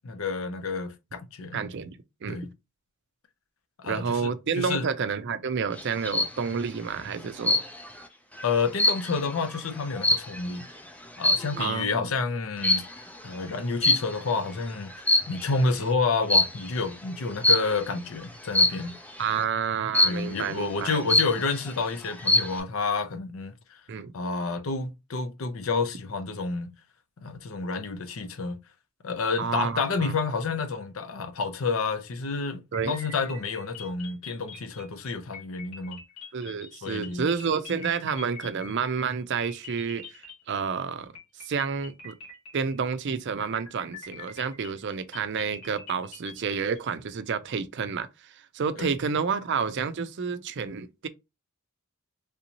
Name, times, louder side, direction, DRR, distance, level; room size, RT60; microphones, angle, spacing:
voice 1, 0.0-1.6 2.3-2.5 3.8-4.8 8.4-10.7 11.2-14.9 15.3-19.0 20.0-23.5 24.1-26.7 27.2-28.6 29.0-36.0 36.8-37.3 48.8-48.9, left 4 dB, 70° left, 0.6 m, -29 dB
voice 2, 1.5-2.4 3.8-7.6 11.6-12.1 19.2-21.1 23.9-24.1 29.4-30.1 32.7-33.0 36.3-40.2 40.5-41.1 41.4-42.1 42.5-51.1, right 6 dB, 55° right, 0.4 m, -30 dB
sound 1, 5.8-6.4 7.4-8.0 8.4-10.6 11.2-11.6 12.6-13.0 13.8-14.4 14.9-15.6 16.3-16.7 17.4-17.8 18.5-19.0 19.9-20.4 20.8-20.9 21.1-21.7 22.1-22.6, left 2 dB, 5° left, 0.4 m, -23 dB
sound 2, 32.7-39.1 39.4-40.8 41.2-43.0 43.4-46.8, left 4 dB, 85° left, 1.5 m, -45 dB
3.4 x 2.7 x 2.9 m
head